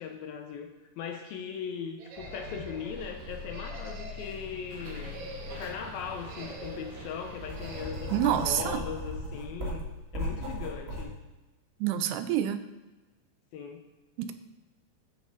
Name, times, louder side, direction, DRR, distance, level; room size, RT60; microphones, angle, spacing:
voice 1, 0.0-5.2 5.6-9.9 10.1-11.1 13.5-13.8, left 7 dB, 75° left, 5 dB, 2.4 m, -39 dB
sound 1, 2.0-2.9 3.5-4.4 4.9-5.8 6.3-7.0 7.6-8.2, right 3 dB, 60° right, 2.1 m, -45 dB
Bus, 2.2-7.9, left 2 dB, 40° right, 2.7 m, -43 dB
Writing, 6.0-6.1 6.6-11.0, equal, 25° right, 1.6 m, -36 dB
voice 2, 8.1-8.8 11.8-12.6 14.2-14.3, right 10 dB, 90° right, 10 dB, 2.7 m, -27 dB
13.5 x 7.6 x 4.0 m, 1.1 s
omnidirectional pair, 4.8 m